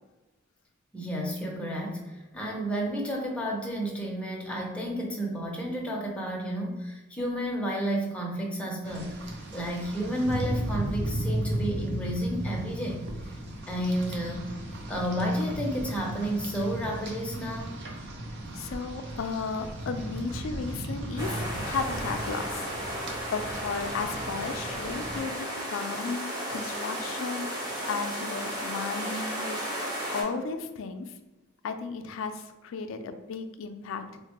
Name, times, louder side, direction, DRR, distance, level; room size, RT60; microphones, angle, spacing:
voice 1, 0.9-13.0 13.7-14.5 14.9-17.7, equal, 5° left, -2 dB, 0.6 m, -31 dB
Rain, 8.8-25.2, right 1 dB, 60° right, 0.5 m, -35 dB
voice 2, 18.5-31.1 31.6-34.2, left 4 dB, 75° left, 8 dB, 0.3 m, -35 dB
sound 1, 21.2-30.2, equal, 25° right, 0.8 m, -34 dB
3.9 x 2.1 x 2.9 m, 1.1 s
head